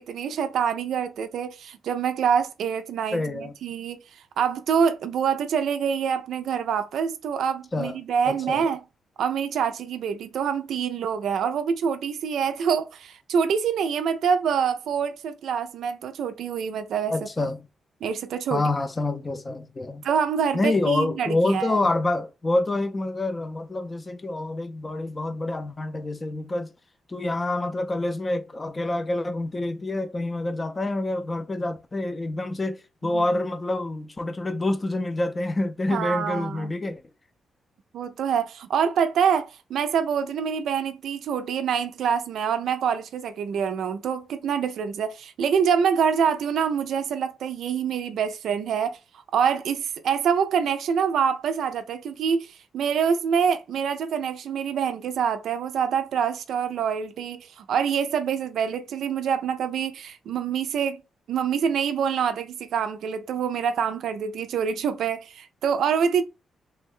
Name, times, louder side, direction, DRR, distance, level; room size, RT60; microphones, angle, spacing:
voice 1, 0.0-4.0 4.4-8.8 9.2-17.5 18.0-18.6 20.0-21.8 33.0-33.2 35.9-36.7 37.9-49.0 49.3-61.0 61.3-66.2, right 7 dB, 85° right, 0.3 m, -26 dB
voice 2, 3.1-3.5 7.7-8.0 8.3-8.7 17.1-17.7 18.5-20.1 20.5-26.7 27.1-37.0, left 2 dB, 25° left, 0.4 m, -27 dB
3.2 x 2.1 x 3.6 m
cardioid pair, 125°, 0 cm